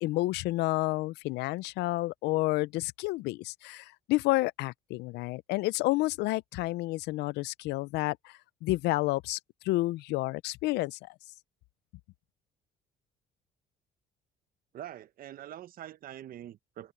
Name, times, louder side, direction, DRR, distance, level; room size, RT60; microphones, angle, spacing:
voice 1, 0.0-9.4 9.6-11.1, left 19 dB, 85° left, 0.5 m, -30 dB
voice 2, 14.7-16.9, right 11 dB, 60° right, 1.0 m, -44 dB
cardioid pair, 110°, 17 cm